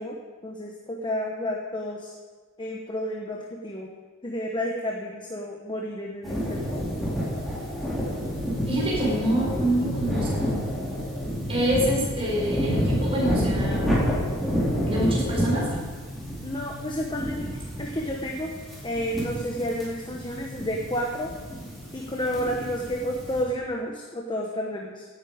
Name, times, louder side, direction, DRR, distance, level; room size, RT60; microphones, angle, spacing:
voice 1, 0.0-2.2 2.6-3.9 4.2-6.6 16.4-17.5 17.8-18.5 18.8-21.3 21.9-25.1, equal, 25° left, 0 dB, 1.2 m, -31 dB
sound 1, 6.2-23.4, equal, ahead, 4.3 m, -29 dB
voice 2, 8.7-10.6 11.5-13.9 14.8-15.7, right 1 dB, 30° right, -5 dB, 4.9 m, -26 dB
16.5 x 9.7 x 5.2 m, 1.4 s
head